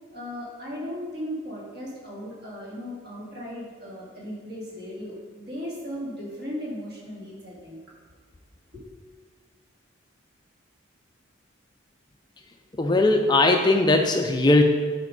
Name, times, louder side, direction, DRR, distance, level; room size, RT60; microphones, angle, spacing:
voice 1, 0.1-7.8 8.7-8.9, equal, 50° right, -5 dB, 2.5 m, -36 dB
voice 2, 12.8-14.6, left 2 dB, 20° left, 4 dB, 0.4 m, -19 dB
9.6 x 5.0 x 5.2 m, 1.5 s
head